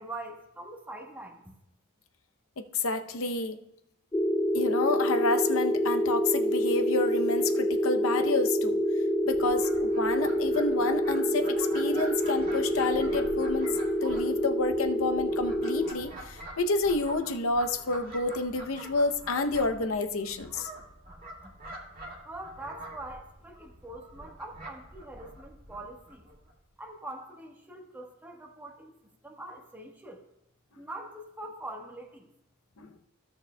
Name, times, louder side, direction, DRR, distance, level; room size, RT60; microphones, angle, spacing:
voice 1, 0.0-1.5 22.2-26.3 26.8-30.2 30.8-32.3, right 2 dB, 10° right, 0 dB, 1.1 m, -43 dB
voice 2, 2.6-3.6 4.5-8.8 9.3-13.7 14.0-20.7 32.8-32.9, left 3 dB, 70° left, 7 dB, 0.7 m, -29 dB
sound 1, 4.1-15.9, equal, 15° left, 0.4 m, -27 dB
Fowl, 9.2-26.5, right 1 dB, 45° right, 1.9 m, -46 dB
15.5 x 7.0 x 2.2 m, 0.85 s
head